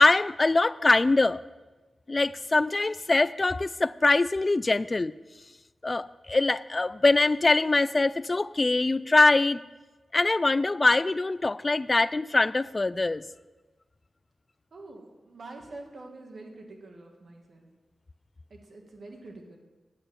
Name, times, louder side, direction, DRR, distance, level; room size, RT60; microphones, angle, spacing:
voice 1, 0.0-1.4 2.1-5.1 5.8-9.6 10.1-13.2, left 2 dB, 30° left, 17 dB, 0.3 m, -23 dB
voice 2, 14.7-17.7 18.5-19.6, right 2 dB, 60° right, 2 dB, 1.9 m, -46 dB
8.8 x 8.4 x 7.2 m, 1.2 s
wide cardioid pair, 120°, 0 cm